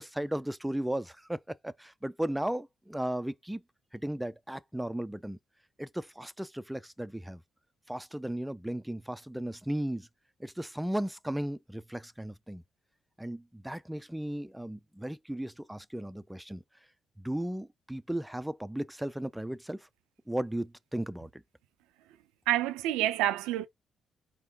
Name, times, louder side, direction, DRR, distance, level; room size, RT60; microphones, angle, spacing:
voice 1, 0.0-3.6 3.9-5.4 5.8-7.4 7.9-10.1 10.4-12.6 13.2-16.6 17.2-19.9 20.3-21.4, right 1 dB, 5° right, 0.3 m, -35 dB
voice 2, 22.5-23.7, right 14 dB, 90° right, 0.3 m, -28 dB
4.1 x 3.6 x 2.8 m
supercardioid pair, 60°, 0 cm